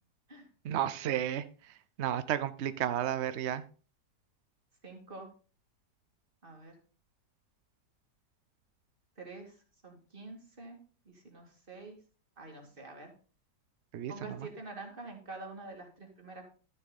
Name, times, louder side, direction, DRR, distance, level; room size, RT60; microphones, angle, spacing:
voice 1, 0.6-1.4 2.0-3.6 13.9-14.1, right 10 dB, 80° right, 13 dB, 0.6 m, -32 dB
voice 2, 4.8-5.3 6.4-6.7 9.2-9.5 9.8-10.8 11.1-12.0 12.4-13.1 14.1-16.4, right 3 dB, 30° right, 2 dB, 2.5 m, -46 dB
12.5 x 7.0 x 4.1 m, 0.38 s
omnidirectional pair, 1.9 m